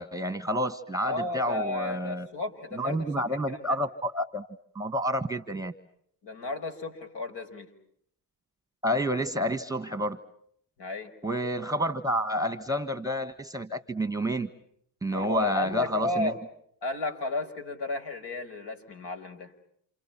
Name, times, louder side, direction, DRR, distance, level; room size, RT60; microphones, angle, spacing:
voice 1, 0.0-2.3 2.7-4.4 4.7-5.7 8.8-10.2 11.2-14.5 15.0-16.4, equal, 5° right, 11 dB, 1.5 m, -29 dB
voice 2, 1.0-3.7 6.2-7.7 10.8-11.1 15.1-16.3 16.8-19.5, left 2 dB, 55° left, 6 dB, 5.7 m, -33 dB
29.5 x 28.5 x 6.0 m, 0.68 s
supercardioid pair, 80°, 48 cm